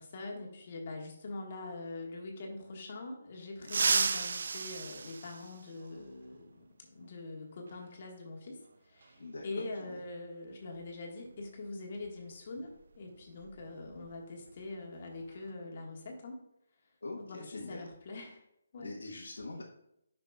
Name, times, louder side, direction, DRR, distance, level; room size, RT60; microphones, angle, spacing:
voice 1, 0.0-16.4 17.2-18.4 18.7-18.9, left 2 dB, 50° left, 0 dB, 1.6 m, -44 dB
sound 1, 3.6-6.0 7.7-7.8 9.0-9.1 10.7-10.9 11.3-11.5 12.0-14.1 14.4-14.7 15.1-15.5, right 5 dB, 65° right, 0.4 m, -34 dB
voice 2, 9.2-10.0 17.0-17.9 18.8-19.6, left 2 dB, 80° left, -3 dB, 1.2 m, -44 dB
9.0 x 5.9 x 2.3 m, 0.79 s
figure-of-eight pair, 155°, 0 cm